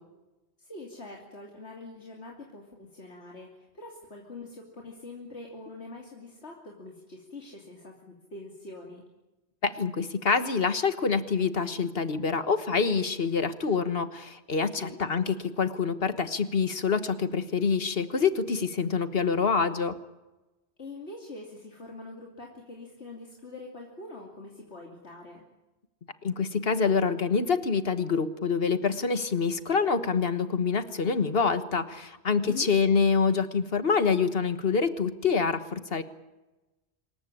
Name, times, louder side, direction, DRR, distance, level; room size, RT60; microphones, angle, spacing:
voice 1, 0.6-9.0 14.8-15.0 20.8-25.4 32.4-32.7, left 2 dB, 85° left, 0 dB, 3.2 m, -44 dB
voice 2, 9.6-20.0 26.2-36.0, left 5 dB, 60° left, 11 dB, 1.6 m, -26 dB
26.0 x 14.5 x 10.0 m, 1.0 s
omnidirectional pair, 1.1 m